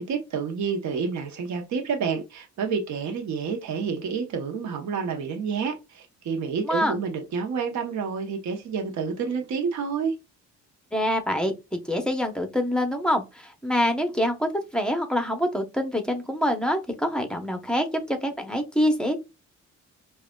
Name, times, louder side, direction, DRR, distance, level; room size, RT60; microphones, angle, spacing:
voice 1, 0.0-10.1, right 5 dB, 65° right, 0.9 m, -29 dB
voice 2, 6.6-7.0 10.9-19.2, equal, 5° left, 0.7 m, -26 dB
4.8 x 2.4 x 2.2 m
cardioid pair, 90°, 30 cm